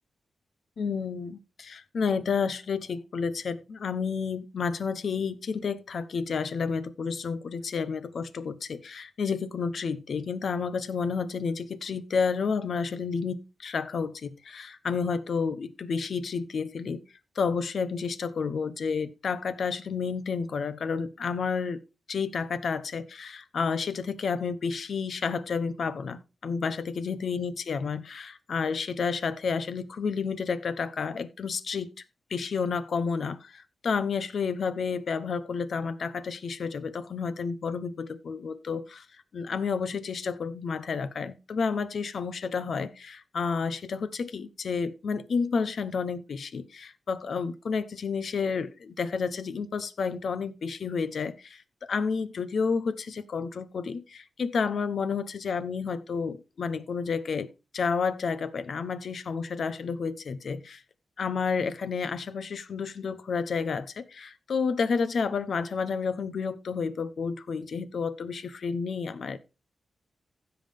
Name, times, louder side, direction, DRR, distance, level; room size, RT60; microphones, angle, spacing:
voice 1, 0.8-17.0 17.3-21.8 22.1-32.0 32.3-39.1 39.3-57.5 57.7-60.8 61.2-69.4, left 5 dB, 65° left, 0.9 m, -30 dB
15.5 x 5.8 x 3.5 m
wide cardioid pair, 100°, 0 cm